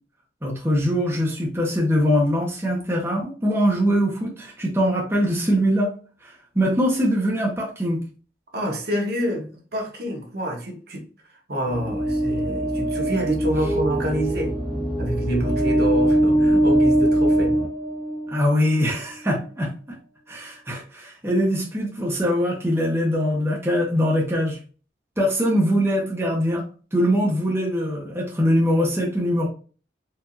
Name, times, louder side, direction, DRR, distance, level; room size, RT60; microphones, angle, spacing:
voice 1, 0.4-5.9 6.2-8.1 18.3-20.0 20.3-24.6 25.2-26.7 26.9-29.5, equal, 15° right, 0.9 m, -22 dB
voice 2, 8.5-11.1 11.5-14.6 15.0-17.6, equal, 55° right, 1.2 m, -27 dB
sound 1, 11.7-18.6, right 1 dB, 10° left, 1.3 m, -22 dB
4.6 x 2.7 x 2.6 m
head